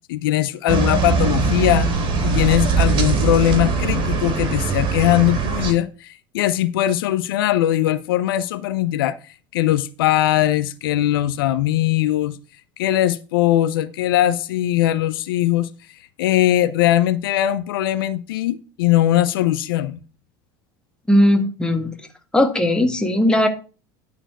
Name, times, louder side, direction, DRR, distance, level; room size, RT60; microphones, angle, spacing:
voice 1, 0.1-1.9 2.2-9.2 9.5-12.4 12.8-15.7 16.2-20.0, left 13 dB, 85° left, 0.6 m, -20 dB
sound 1, 0.7-5.7, right 5 dB, 45° right, 3.2 m, -21 dB
voice 2, 21.1-21.9 22.3-23.5, left 1 dB, 5° left, 2.0 m, -17 dB
11.5 x 4.6 x 5.9 m
supercardioid pair, 95°, 12 cm